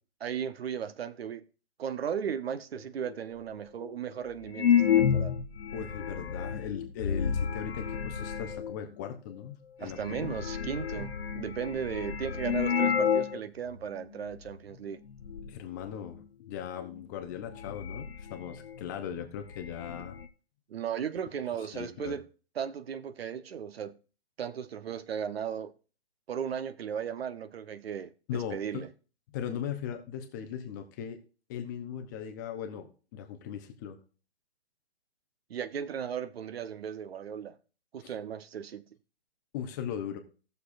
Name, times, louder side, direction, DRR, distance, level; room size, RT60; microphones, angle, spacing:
voice 1, 0.2-1.5 1.8-5.3 9.8-15.0 20.7-22.3 22.6-24.0 24.4-25.7 26.3-28.1 28.5-28.9 35.5-37.6 37.9-38.8, right 8 dB, 60° right, 0.9 m, -36 dB
sound 1, 3.1-3.2 3.8-3.9 4.5-8.8 9.5-9.6 9.9-13.4 13.7-13.8 14.5-14.8 15.1-15.6 16.8-16.9 17.3-18.9 19.2-19.3 19.5-20.3, left 7 dB, 65° left, 1.1 m, -30 dB
voice 2, 5.7-10.3 15.5-20.2 21.6-22.2 28.3-28.8 29.3-31.2 31.5-34.0 38.0-38.1 39.5-40.2, left 9 dB, 15° left, 0.6 m, -38 dB
17.0 x 6.7 x 2.5 m
hypercardioid pair, 150°, 34 cm